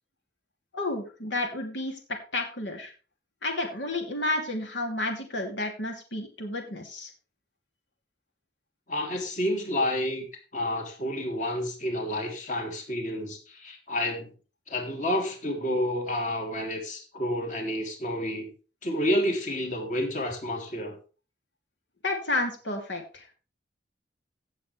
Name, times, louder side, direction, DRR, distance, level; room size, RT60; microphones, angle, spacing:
voice 1, 0.7-2.9 3.4-7.1 22.0-23.3, left 2 dB, 85° left, 2 dB, 2.8 m, -31 dB
voice 2, 8.9-10.3 10.5-14.3 14.7-18.5 18.8-21.0, left 1 dB, 45° left, 2 dB, 3.0 m, -29 dB
16.5 x 7.6 x 3.4 m, 0.35 s
head